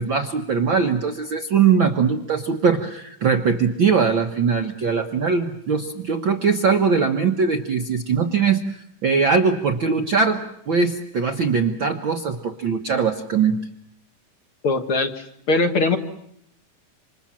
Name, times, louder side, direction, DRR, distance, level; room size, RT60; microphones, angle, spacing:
voice 1, 0.0-13.7, right 5 dB, 55° right, 5 dB, 1.3 m, -21 dB
voice 2, 14.6-16.0, left 3 dB, 50° left, 6 dB, 1.9 m, -21 dB
28.0 x 26.5 x 7.4 m, 0.74 s
omnidirectional pair, 3.7 m